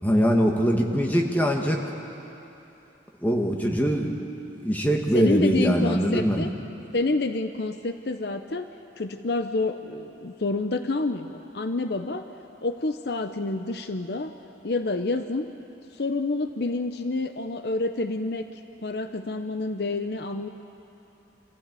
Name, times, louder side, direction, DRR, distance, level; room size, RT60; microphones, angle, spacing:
voice 1, 0.0-1.9 3.2-6.5, equal, 10° left, 1 dB, 1.7 m, -23 dB
voice 2, 5.1-6.5 6.9-8.7 9.0-12.2 12.6-14.3 14.6-15.5 15.9-18.5 18.8-20.5, left 2 dB, 60° left, 8 dB, 0.7 m, -28 dB
26.0 x 15.0 x 8.4 m, 2.9 s
head